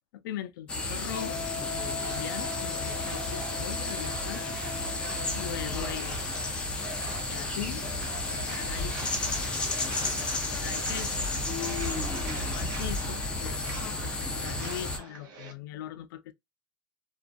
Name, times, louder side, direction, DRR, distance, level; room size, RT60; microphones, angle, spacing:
voice 1, 0.1-1.4 1.7-5.1 5.3-6.3 7.3-7.8 8.3-9.1 10.0-11.3 11.9-16.3, left 12 dB, 75° left, 0.4 m, -41 dB
sound 1, 0.7-15.0, left 2 dB, 10° left, 0.4 m, -32 dB
Wind instrument woodwind instrument, 1.1-5.8, left 5 dB, 20° right, 1.0 m, -40 dB
sound 2, 1.5-15.5, right 4 dB, 85° right, 0.8 m, -44 dB
2.3 x 2.3 x 2.4 m
supercardioid pair, 170°, 11 cm